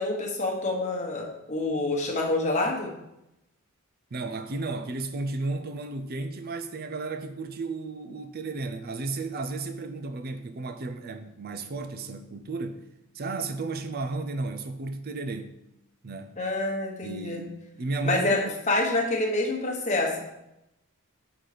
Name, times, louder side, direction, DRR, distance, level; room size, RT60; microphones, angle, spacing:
voice 1, 0.0-2.9 16.4-17.4 18.0-18.4 18.7-20.2, left 2 dB, 30° left, 1.2 m, -27 dB
voice 2, 4.1-12.8 13.1-15.6 16.0-16.4 17.0-18.5, right 3 dB, 45° right, 0.5 m, -33 dB
6.2 x 3.9 x 5.0 m
head